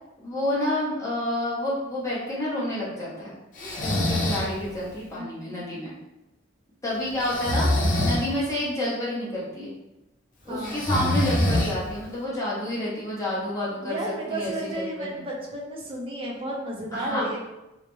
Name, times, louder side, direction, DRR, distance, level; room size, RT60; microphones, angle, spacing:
voice 1, 0.2-3.3 3.8-5.9 6.8-9.7 10.4-14.0 14.3-15.2 16.9-17.3, left 1 dB, 15° left, -8 dB, 0.8 m, -29 dB
Breathing, 3.6-4.5 7.2-8.2 10.6-12.0, left 1 dB, 40° left, 0.4 m, -24 dB
voice 2, 10.5-10.8 13.8-17.4, right 1 dB, 30° right, -3 dB, 0.5 m, -33 dB
2.3 x 2.1 x 3.0 m, 0.96 s
head